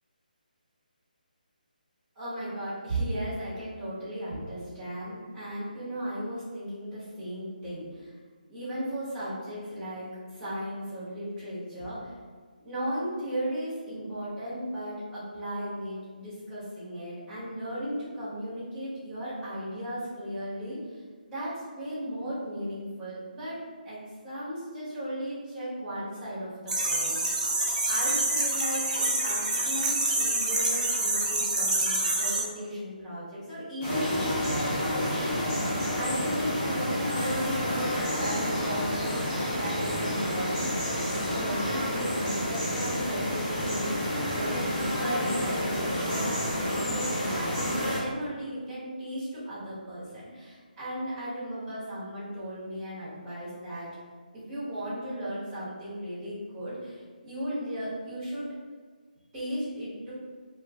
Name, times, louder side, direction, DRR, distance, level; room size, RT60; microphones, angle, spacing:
voice 1, 2.1-8.1 8.5-10.1 10.3-12.2 12.6-20.8 21.3-27.2 27.4-27.5 27.9-35.1 36.0-39.1 39.5-53.9 54.3-58.5 59.3-60.1, equal, 10° right, -13 dB, 1.2 m, -36 dB
sound 1, 26.7-32.4, right 2 dB, 50° right, 0.7 m, -27 dB
sound 2, 33.8-48.0, equal, 20° left, 1.2 m, -29 dB
2.7 x 2.4 x 3.4 m, 1.5 s
hypercardioid pair, 170°, 5 cm